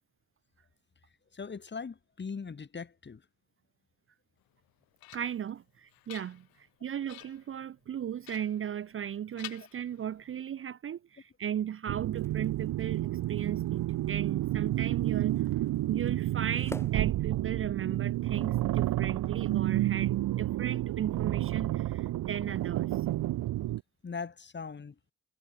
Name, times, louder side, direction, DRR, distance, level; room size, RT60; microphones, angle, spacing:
voice 1, 1.3-3.2 24.0-24.9, left 5 dB, 30° left, 1.5 m, -40 dB
sound 1, 4.5-5.5 5.9-6.7 7.1-7.5 8.2-9.1 9.4-10.3, left 17 dB, 85° left, 1.3 m, -49 dB
voice 2, 5.1-15.4 15.9-23.0, right 9 dB, 40° right, 0.5 m, -36 dB
sound 2, 11.9-17.9, left 1 dB, 5° left, 7.0 m, -50 dB
sound 3, 11.9-23.8, right 15 dB, 70° right, 0.9 m, -30 dB
supercardioid pair, 65°, 35 cm